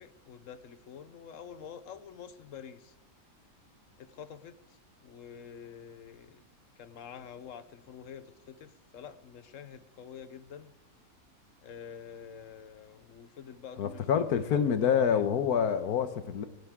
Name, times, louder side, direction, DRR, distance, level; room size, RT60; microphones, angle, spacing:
voice 1, 0.0-2.9 4.0-6.4 6.8-10.7 11.6-15.3, left 7 dB, 65° left, 13 dB, 1.1 m, -47 dB
voice 2, 13.8-16.5, left 7 dB, 90° left, 11 dB, 1.5 m, -27 dB
18.0 x 16.5 x 3.7 m, 1.0 s
omnidirectional pair, 1.6 m